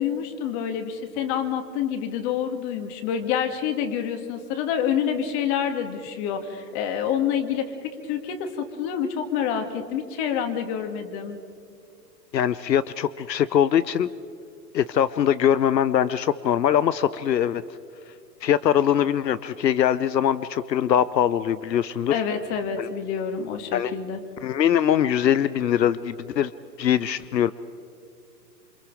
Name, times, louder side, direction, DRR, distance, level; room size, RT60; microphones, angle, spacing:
voice 1, 0.0-11.4 22.1-24.2, left 8 dB, 40° left, 6 dB, 2.5 m, -27 dB
voice 2, 12.3-14.1 14.7-17.6 18.4-22.1 22.8-22.9 23.7-23.9 24.4-26.5 26.8-27.5, left 9 dB, 90° left, 16 dB, 0.7 m, -22 dB
28.0 x 25.5 x 4.9 m, 2.4 s
hypercardioid pair, 120°, 49 cm